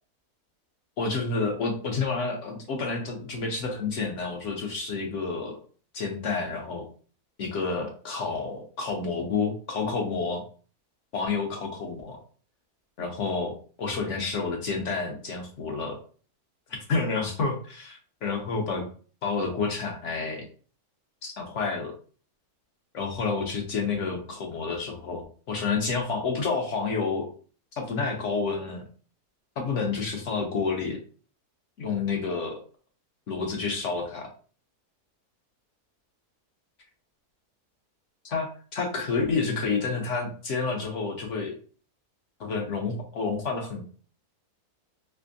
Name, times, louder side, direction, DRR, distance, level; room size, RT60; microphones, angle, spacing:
voice 1, 1.0-5.5 5.9-6.8 7.4-10.4 11.1-12.2 13.0-13.5 13.8-15.9 16.7-18.8 19.2-20.4 21.2-21.9 22.9-27.3 27.8-28.8 29.6-31.0 31.8-32.6 33.3-34.3 38.2-41.5 42.4-43.8, left 4 dB, 60° left, 1 dB, 0.9 m, -29 dB
3.4 x 2.9 x 2.6 m, 0.41 s
omnidirectional pair, 1.7 m